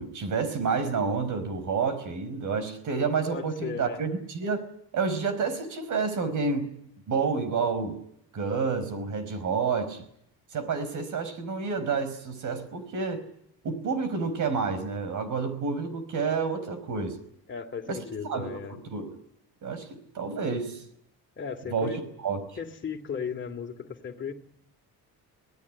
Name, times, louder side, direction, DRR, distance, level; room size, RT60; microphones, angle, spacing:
voice 1, 0.0-4.7 4.9-6.7 7.1-8.0 8.3-10.0 10.5-13.2 13.6-17.2 17.9-19.2 19.6-19.9 20.1-20.8 21.7-22.4, right 5 dB, 55° right, 12 dB, 5.0 m, -29 dB
voice 2, 3.3-4.0 17.5-18.8 21.4-22.0 22.6-24.3, left 6 dB, 30° left, 5 dB, 2.9 m, -36 dB
25.5 x 19.0 x 9.9 m, 0.72 s
cardioid pair, 160°, 37 cm